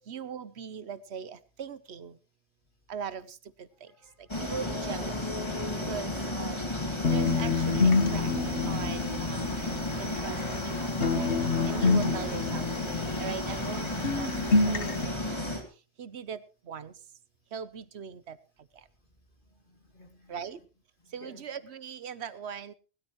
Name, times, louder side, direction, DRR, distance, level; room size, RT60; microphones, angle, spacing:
voice 1, 0.1-2.1 2.9-3.9 4.4-5.2 5.9-6.6 7.1-8.3 8.6-9.5 10.0-10.4 10.6-10.9 11.2-12.6 13.2-13.9 14.2-15.0 15.3-15.4 16.0-16.4 16.7-16.9 17.5-18.4 20.3-20.6 21.1-22.7, right 7 dB, 80° right, 15 dB, 1.1 m, -40 dB
voice 2, 3.9-4.5 6.1-6.4 19.5-20.4 21.0-21.4, left 1 dB, 50° left, 3 dB, 2.9 m, -55 dB
sound 1, 4.3-15.6, left 1 dB, 25° left, 2.9 m, -33 dB
sound 2, 7.0-10.7 11.0-13.8 14.0-15.0, left 3 dB, 90° left, 1.6 m, -28 dB
19.0 x 13.0 x 3.1 m, 0.34 s
omnidirectional pair, 1.1 m